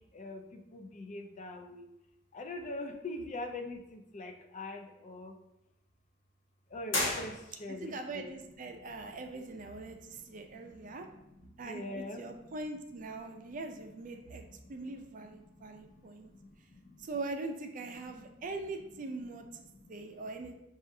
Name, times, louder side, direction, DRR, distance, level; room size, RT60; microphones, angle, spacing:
voice 1, 0.0-1.9 2.3-5.3 6.7-8.3 10.0-12.3 13.2-13.6 14.1-14.9 15.5-17.1 18.3-18.4 19.6-20.3, left 2 dB, 35° left, 5 dB, 0.4 m, -44 dB
sound 1, 6.9-7.9, left 2 dB, 70° left, 1.2 m, -34 dB
voice 2, 7.7-11.1 11.6-14.4 14.7-16.3 17.0-20.6, right 3 dB, 40° right, 5 dB, 0.4 m, -42 dB
6.2 x 2.4 x 2.6 m, 0.88 s
head